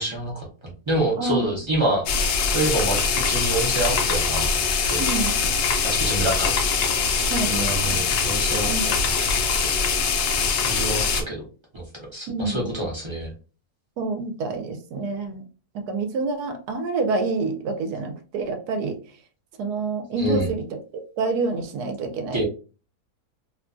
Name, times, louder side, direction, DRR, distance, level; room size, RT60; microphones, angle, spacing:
voice 1, 0.0-2.2 2.5-5.1 5.8-6.5 7.4-9.1 9.6-9.7 10.7-11.4 11.7-11.8 12.1-13.3 20.2-20.5 22.3-22.4, right 1 dB, 40° right, -3 dB, 0.4 m, -27 dB
sound 1, 2.1-11.2, left 5 dB, 65° left, 0.8 m, -23 dB
voice 2, 5.0-5.5 7.3-8.0 8.7-8.8 12.3-12.7 14.0-15.4 15.9-19.0 19.6-20.6 21.2-22.4, right 3 dB, 85° right, 6 dB, 1.2 m, -27 dB
2.9 x 2.2 x 2.4 m, 0.35 s
omnidirectional pair, 1.7 m